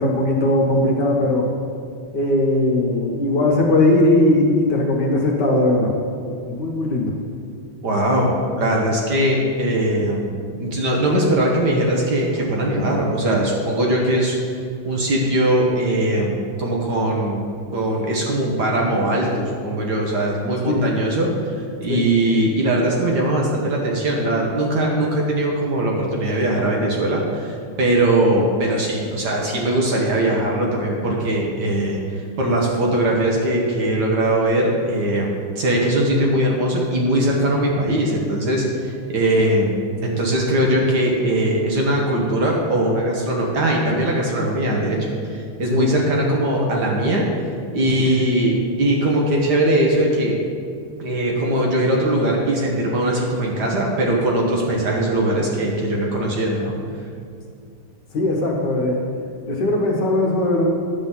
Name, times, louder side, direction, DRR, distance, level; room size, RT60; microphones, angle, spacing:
voice 1, 0.0-1.5 2.1-5.9 6.4-7.1 20.7-20.9 21.9-22.0 45.7-45.9 47.8-48.1 58.1-59.0 59.5-60.6, left 1 dB, 60° left, -1 dB, 1.5 m, -19 dB
voice 2, 7.8-14.5 14.8-17.5 17.7-21.5 21.8-47.3 47.7-50.4 51.0-56.7, right 1 dB, 55° right, -2 dB, 1.5 m, -20 dB
10.0 x 4.0 x 7.2 m, 2.3 s
omnidirectional pair, 2.4 m